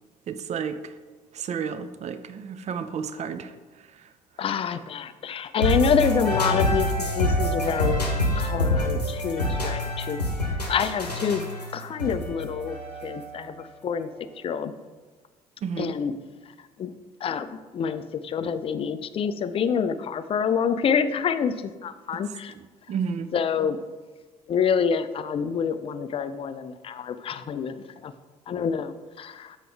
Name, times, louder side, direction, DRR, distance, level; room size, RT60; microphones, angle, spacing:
voice 1, 0.3-0.9 1.3-3.5 3.9-4.1 15.6-15.9 22.5-22.6 22.9-23.3, right 6 dB, 35° right, 11 dB, 0.5 m, -32 dB
voice 2, 4.4-8.0 8.3-10.2 10.7-11.4 11.7-14.1 14.4-14.7 15.8-16.1 16.8-16.9 17.2-22.5 23.3-23.8 24.5-27.7 28.0-28.1 28.5-29.6, left 7 dB, 30° left, 12 dB, 0.4 m, -27 dB
sound 1, 5.6-13.4, equal, 90° left, 0.8 m, -26 dB
7.6 x 4.4 x 3.4 m, 1.3 s
figure-of-eight pair, 55°, 20 cm